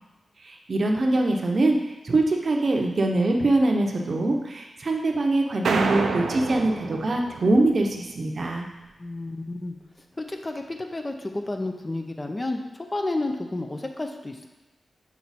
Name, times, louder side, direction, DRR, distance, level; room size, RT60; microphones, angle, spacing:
voice 1, 0.4-8.7, right 2 dB, 50° right, 2 dB, 0.7 m, -23 dB
sound 1, 5.6-8.1, right 4 dB, 85° right, 0.5 m, -28 dB
voice 2, 9.0-9.7 10.2-12.6 12.9-14.5, left 2 dB, 25° left, 4 dB, 0.6 m, -31 dB
6.0 x 4.3 x 4.1 m, 1.1 s
wide cardioid pair, 95°, 0 cm